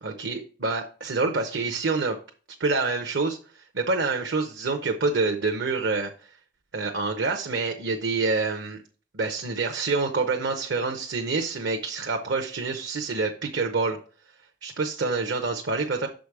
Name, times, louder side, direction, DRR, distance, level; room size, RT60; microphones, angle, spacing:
voice 1, 0.0-2.2 2.6-6.1 6.7-8.8 9.1-14.0 14.6-16.1, right 3 dB, 65° right, 5 dB, 0.8 m, -27 dB
6.7 x 5.0 x 4.7 m, 0.39 s
head